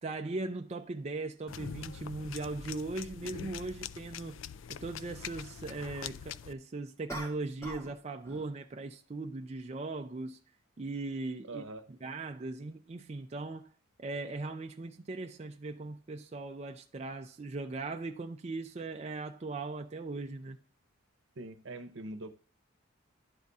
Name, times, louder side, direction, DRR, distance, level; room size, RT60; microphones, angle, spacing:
voice 1, 0.0-4.4 4.7-10.4 10.8-11.6 11.9-13.7 14.0-20.6, right 3 dB, 35° right, 0.4 m, -39 dB
sound 1, 1.5-6.5, left 8 dB, 75° left, 0.4 m, -44 dB
sound 2, 7.1-8.0 8.2-8.6, right 1 dB, 15° left, 1.6 m, -42 dB
voice 2, 11.5-11.8 21.4-22.3, right 2 dB, 70° right, 0.8 m, -42 dB
11.5 x 4.0 x 3.5 m
head